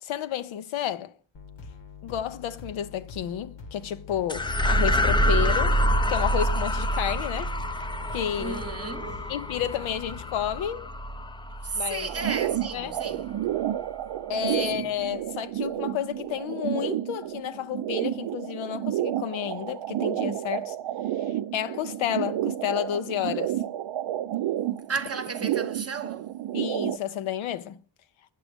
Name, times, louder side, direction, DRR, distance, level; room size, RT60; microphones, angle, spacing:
voice 1, 0.0-1.1 2.0-5.8 6.1-7.5 8.1-8.6 9.3-10.9 11.7-12.1 12.7-12.9 14.3-20.8 21.5-23.6 26.5-27.8, left 10 dB, 80° left, 0.6 m, -31 dB
sound 1, 1.3-10.6, left 4 dB, 65° left, 1.2 m, -44 dB
sound 2, 4.3-12.9, equal, 10° left, 0.4 m, -26 dB
voice 2, 8.4-9.3 11.6-13.4 14.6-14.9 24.9-26.4, right 4 dB, 30° right, 0.9 m, -34 dB
sound 3, 12.1-27.0, right 12 dB, 65° right, 0.5 m, -30 dB
8.5 x 6.1 x 3.4 m
cardioid pair, 60°, 47 cm